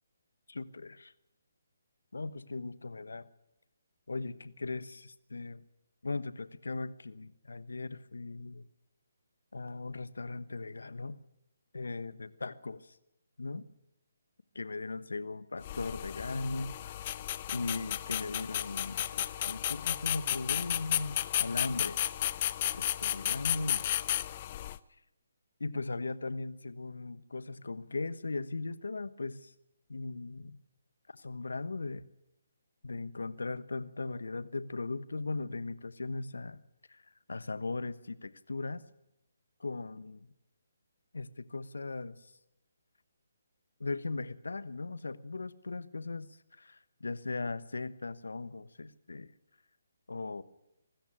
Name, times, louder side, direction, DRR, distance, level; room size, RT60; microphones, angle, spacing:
voice 1, 0.5-1.1 2.1-3.3 4.1-5.6 6.0-8.6 9.5-11.2 11.7-13.0 13.4-13.6 14.5-17.0 17.5-22.0 22.7-23.9 25.6-29.5 29.9-30.6 31.1-32.1 32.8-36.6 36.9-37.0 37.3-38.8 39.6-40.3 41.1-42.3 43.8-49.3 50.1-50.4, left 3 dB, 80° left, 15 dB, 1.2 m, -38 dB
sound 1, 15.6-24.8, left 12 dB, 35° left, 0.7 m, -33 dB
24.0 x 13.5 x 9.0 m, 0.87 s
figure-of-eight pair, 150°, 0 cm